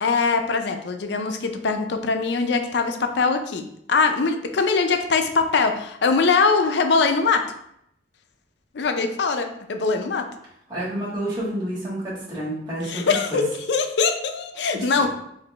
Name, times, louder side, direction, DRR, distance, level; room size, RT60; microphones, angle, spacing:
voice 1, 0.0-7.4 8.7-10.3 12.8-15.1, left 4 dB, 70° left, 6 dB, 0.5 m, -22 dB
voice 2, 10.7-13.4 14.7-15.1, right 1 dB, 25° right, -8 dB, 1.5 m, -29 dB
5.0 x 2.6 x 3.1 m, 0.74 s
head